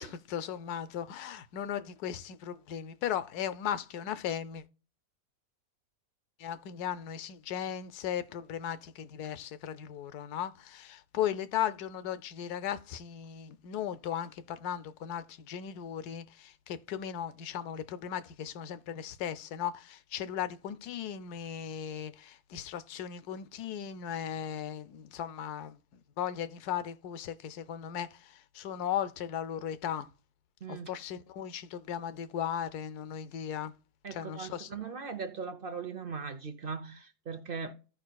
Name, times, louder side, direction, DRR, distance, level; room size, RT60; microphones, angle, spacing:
voice 1, 0.0-4.6 6.4-25.8 26.2-30.1 30.7-33.7 34.1-34.7, left 9 dB, 85° left, 1.2 m, -37 dB
voice 2, 30.6-31.0 34.0-37.7, right 5 dB, 50° right, 0.7 m, -39 dB
15.0 x 5.3 x 2.2 m
omnidirectional pair, 1.6 m